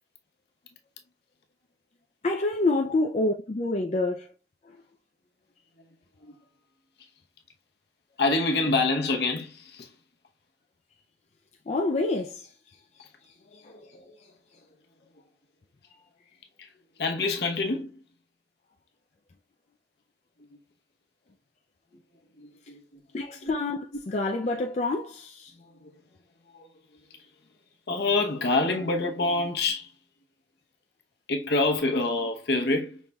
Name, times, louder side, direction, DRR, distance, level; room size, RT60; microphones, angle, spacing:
voice 1, 2.2-4.3 11.7-12.5 13.6-13.7 23.1-25.5, left 2 dB, 35° left, 0.4 m, -27 dB
voice 2, 8.2-9.9 13.0-13.1 13.5-14.1 16.6-16.7 17.0-18.0 20.5-20.6 22.4-23.0 23.4-23.5 25.6-25.9 26.5-26.7 27.1-27.2 27.9-29.9 31.3-33.0, left 3 dB, 60° left, 0.8 m, -27 dB
5.4 x 3.2 x 2.2 m
head